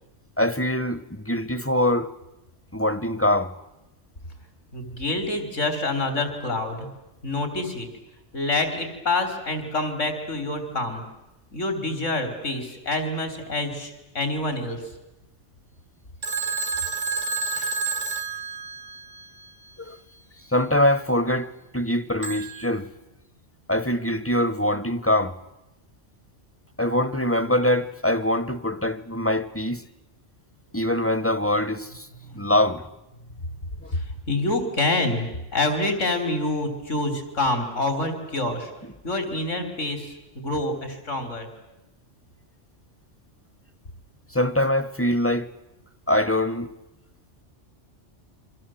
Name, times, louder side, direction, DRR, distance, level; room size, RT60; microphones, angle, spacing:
voice 1, 0.4-2.1 2.7-3.5 17.5-17.7 19.8-20.0 20.5-22.9 23.7-25.4 26.8-29.8 30.7-32.1 32.3-32.8 33.8-34.0 44.3-45.5 46.1-46.7, left 1 dB, 15° left, 0.7 m, -23 dB
voice 2, 4.7-6.9 7.2-7.9 8.3-11.0 11.5-14.8 33.9-38.7 39.0-41.5, left 2 dB, 85° left, 3.9 m, -27 dB
Telephone, 16.2-19.2 22.2-22.7, right 4 dB, 85° right, 2.3 m, -29 dB
29.0 x 24.5 x 7.6 m
omnidirectional pair, 1.2 m